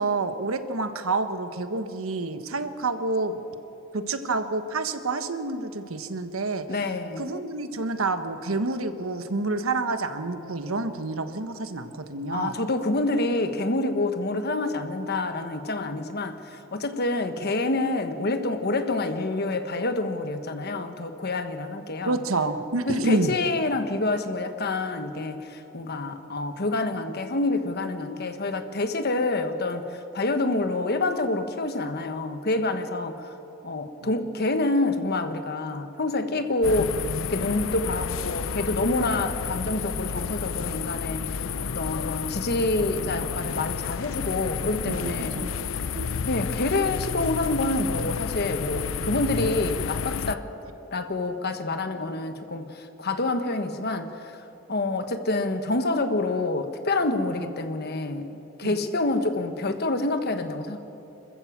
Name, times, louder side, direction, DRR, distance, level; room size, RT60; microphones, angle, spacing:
voice 1, 0.0-3.4 3.9-6.9 7.2-12.6 22.1-23.3 44.9-45.6 45.9-46.1 57.4-57.5 58.6-58.8, right 3 dB, 90° right, 9 dB, 1.2 m, -28 dB
voice 2, 6.7-7.3 12.3-22.2 22.8-33.3 33.6-41.5 41.7-45.4 46.3-50.5 50.9-54.4 54.7-58.3 58.6-60.8, left 2 dB, 50° left, 8 dB, 1.3 m, -27 dB
sound 1, 36.6-50.4, left 6 dB, 70° left, 0.5 m, -31 dB
26.5 x 14.0 x 7.4 m, 3.0 s
head